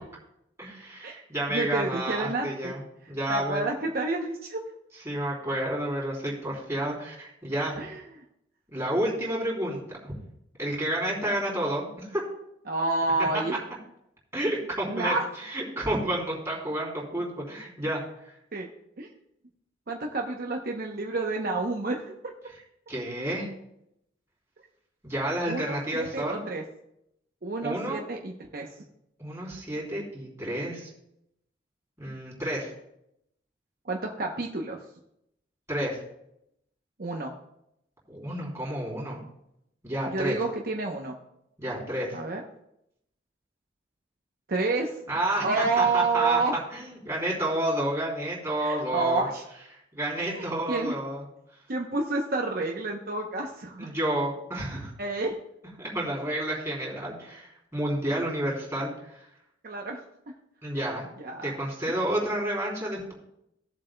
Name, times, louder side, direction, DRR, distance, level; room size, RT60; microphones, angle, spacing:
voice 1, 0.6-2.8 3.1-3.7 5.0-7.7 8.7-10.1 10.6-12.2 13.3-13.4 14.3-18.3 22.9-23.5 25.0-26.4 27.6-28.0 29.2-30.9 32.0-32.7 35.7-36.0 38.1-39.2 39.8-40.4 41.6-42.2 45.1-46.4 46.7-49.3 49.9-51.2 53.8-54.9 55.8-59.2 60.6-61.1 61.4-63.1, right 1 dB, 15° right, -4 dB, 3.4 m, -30 dB
voice 2, 1.5-2.7 3.3-4.6 7.8-8.0 11.2-11.4 12.7-13.6 14.9-15.2 18.5-18.7 19.0-19.1 19.9-22.1 25.5-26.6 27.4-28.7 33.8-34.8 37.0-37.3 40.1-41.2 42.1-42.4 44.5-45.0 45.4-46.6 48.6-49.4 50.2-51.0 51.7-53.9 55.0-55.4 59.6-60.0 61.2-61.5 61.9-62.0, right 3 dB, 55° right, 1 dB, 0.8 m, -29 dB
17.0 x 7.6 x 2.2 m, 0.80 s
head